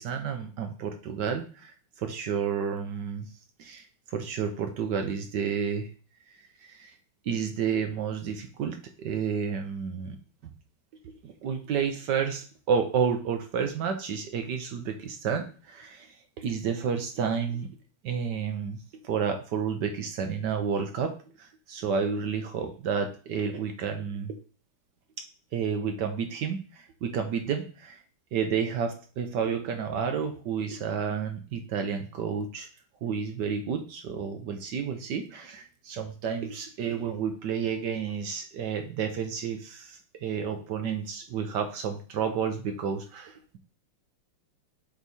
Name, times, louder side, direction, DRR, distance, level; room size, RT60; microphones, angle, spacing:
voice 1, 0.0-1.7 2.0-3.3 3.6-5.9 6.7-6.9 7.2-10.2 10.4-10.5 11.2-17.7 18.0-18.8 19.0-21.1 21.4-24.4 25.5-28.0 28.3-32.7 33.0-43.6, right 6 dB, 65° right, 6 dB, 1.3 m, -31 dB
8.2 x 3.2 x 4.1 m, 0.38 s
omnidirectional pair, 2.3 m